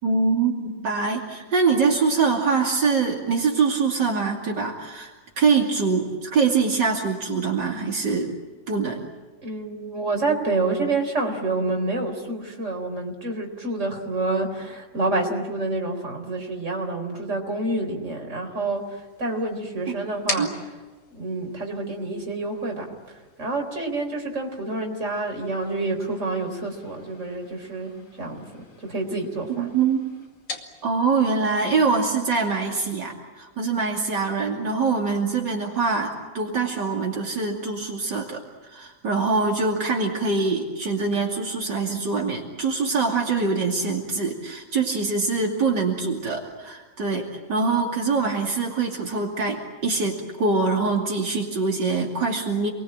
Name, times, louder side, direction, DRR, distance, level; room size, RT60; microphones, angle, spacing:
voice 1, 0.0-8.3 8.7-9.1 20.4-20.5 29.6-30.1 30.8-38.4 38.7-52.7, right 4 dB, 75° right, -1 dB, 3.3 m, -24 dB
voice 2, 9.4-20.5 21.1-22.9 23.4-27.9 28.2-28.4 28.8-29.7, right 2 dB, 40° right, 2 dB, 4.4 m, -28 dB
sound 1, 18.7-33.1, left 3 dB, 90° left, 3.2 m, -42 dB
29.0 x 22.0 x 8.8 m, 1.3 s
omnidirectional pair, 1.9 m